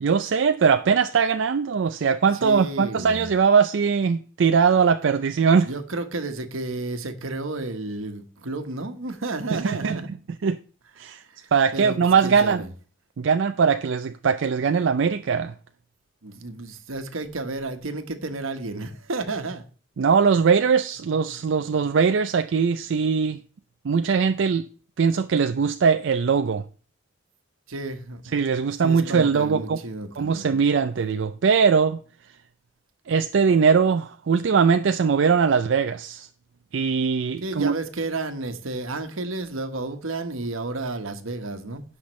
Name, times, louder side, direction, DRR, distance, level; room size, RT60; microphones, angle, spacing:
voice 1, 0.0-5.7 9.5-10.0 10.4-10.6 11.0-11.2 11.5-12.6 13.2-15.5 20.0-23.4 23.8-24.6 25.0-26.6 28.3-29.8 30.2-32.0 33.1-36.3 36.7-37.7, right 6 dB, 60° right, 0.4 m, -21 dB
voice 2, 2.4-3.3 5.5-10.1 11.2-12.7 16.2-19.6 21.3-21.4 27.7-28.2 28.8-30.5 37.4-41.8, right 2 dB, 85° right, 1.2 m, -32 dB
16.5 x 5.8 x 3.2 m
head